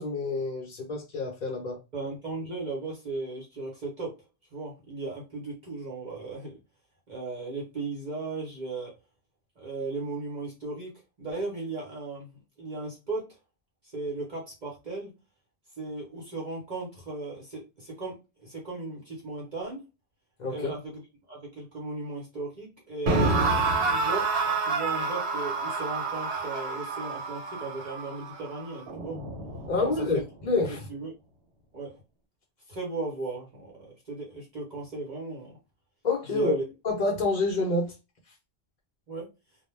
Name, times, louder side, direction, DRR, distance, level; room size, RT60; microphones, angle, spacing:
voice 1, 0.0-1.8 20.4-20.7 29.7-30.9 36.0-36.5 36.8-37.9, left 3 dB, 50° left, 0.7 m, -28 dB
voice 2, 1.9-4.1 4.5-6.6 7.1-8.9 9.6-10.9 11.2-13.3 13.9-15.1 15.8-19.8 20.5-21.0 21.3-23.5 23.9-29.2 29.8-30.2 30.7-31.1 31.7-32.0 32.7-35.5 36.3-36.6 39.1-39.3, right 3 dB, 45° right, 0.9 m, -36 dB
sound 1, 23.1-30.2, right 3 dB, 85° right, 1.0 m, -29 dB
2.3 x 2.2 x 3.1 m
omnidirectional pair, 1.1 m